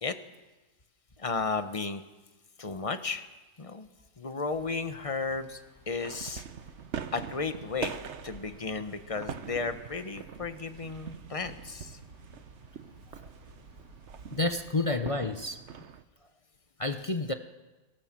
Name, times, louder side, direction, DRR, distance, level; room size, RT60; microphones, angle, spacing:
voice 1, 1.2-2.0 2.6-3.3 3.6-3.9 4.2-5.6 5.9-6.4 7.1-12.0 14.8-14.9 17.0-17.1, left 4 dB, 25° left, 0.8 m, -34 dB
sound 1, 4.5-14.8, right 1 dB, 70° right, 3.7 m, -56 dB
sound 2, 6.0-16.0, right 7 dB, 50° right, 0.9 m, -43 dB
voice 2, 14.3-15.6 16.8-17.3, left 2 dB, 60° left, 0.3 m, -29 dB
22.0 x 18.0 x 7.5 m
omnidirectional pair, 2.0 m